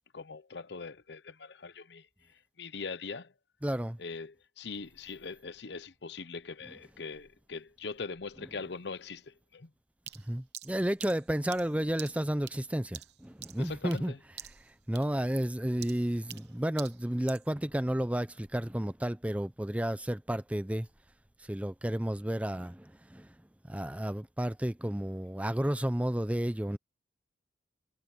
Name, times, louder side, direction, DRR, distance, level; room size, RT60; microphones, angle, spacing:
voice 1, 0.1-2.1 2.6-3.3 4.0-9.7 13.6-14.2, left 4 dB, 75° left, 0.8 m, -41 dB
voice 2, 3.6-4.0 10.3-14.1 14.9-20.9 21.5-23.3 23.7-26.8, right 1 dB, 5° right, 0.5 m, -32 dB
sound 1, 10.1-14.1 14.4-14.7 14.9-17.5, right 13 dB, 70° right, 0.9 m, -47 dB
head